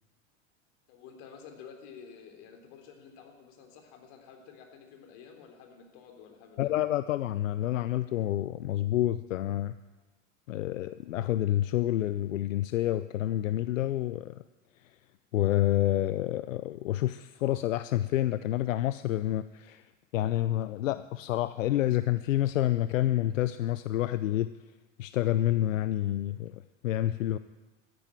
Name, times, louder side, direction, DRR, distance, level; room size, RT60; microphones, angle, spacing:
voice 1, 0.9-6.7, left 6 dB, 60° left, 4 dB, 3.6 m, -51 dB
voice 2, 6.6-9.7 10.5-14.4 15.3-19.8 20.1-24.5 25.0-27.4, left 13 dB, 90° left, 14 dB, 0.6 m, -28 dB
13.5 x 10.5 x 9.2 m, 1.2 s
hypercardioid pair, 105°, 38 cm